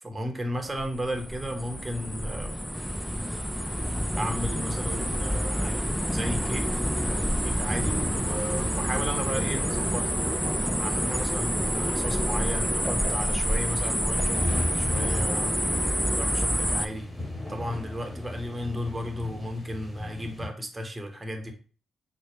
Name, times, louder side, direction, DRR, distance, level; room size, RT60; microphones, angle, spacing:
voice 1, 0.0-2.5 4.2-5.8 6.1-6.7 7.4-10.2 10.8-15.6 16.2-17.1 17.5-21.5, equal, 25° right, 4 dB, 0.8 m, -34 dB
sound 1, 0.6-16.9, equal, ahead, 0.3 m, -28 dB
sound 2, 2.7-20.5, left 2 dB, 20° left, 1.8 m, -39 dB
4.2 x 2.1 x 3.0 m, 0.39 s
hypercardioid pair, 45°, 0 cm